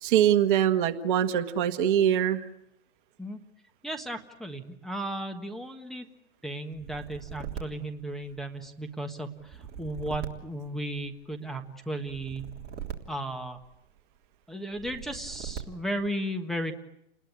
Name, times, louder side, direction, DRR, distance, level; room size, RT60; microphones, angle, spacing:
voice 1, 0.0-2.5, right 10 dB, 45° right, 9 dB, 1.6 m, -23 dB
voice 2, 3.8-6.1 6.4-12.4 13.1-13.6 14.5-16.8, right 1 dB, ahead, 3 dB, 1.5 m, -35 dB
sound 1, 6.7-8.7 9.4-11.3 12.1-14.0 14.7-16.1, right 8 dB, 25° right, 3.4 m, -41 dB
30.0 x 20.5 x 9.7 m, 0.81 s
hypercardioid pair, 135°, 37 cm